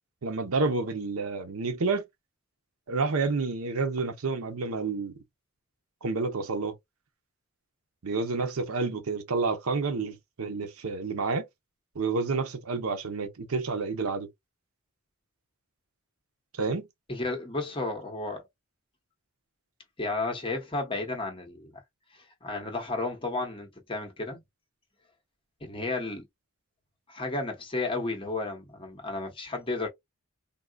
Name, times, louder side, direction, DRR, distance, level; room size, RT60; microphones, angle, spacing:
voice 1, 0.2-2.0 2.9-5.1 6.0-6.8 8.0-11.5 11.9-14.3 16.6-16.9, right 4 dB, 75° right, 0.7 m, -29 dB
voice 2, 17.1-18.4 20.0-21.7 22.1-24.4 25.6-26.3 27.1-29.9, left 2 dB, 25° left, 1.0 m, -33 dB
3.7 x 2.2 x 2.3 m
head